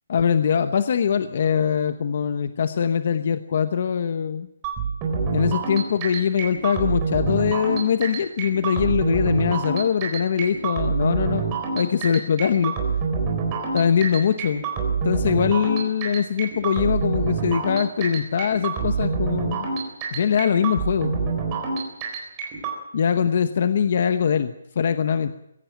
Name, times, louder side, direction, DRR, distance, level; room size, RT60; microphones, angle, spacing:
voice 1, 0.1-4.5 5.3-11.4 11.7-12.7 13.7-14.7 15.0-19.7 20.1-21.1 22.9-25.3, left 7 dB, 40° left, 11 dB, 0.9 m, -22 dB
sound 1, 4.6-22.8, right 5 dB, 15° right, 4.0 m, -26 dB
22.0 x 16.5 x 9.1 m, 0.87 s
hypercardioid pair, 180°, 0 cm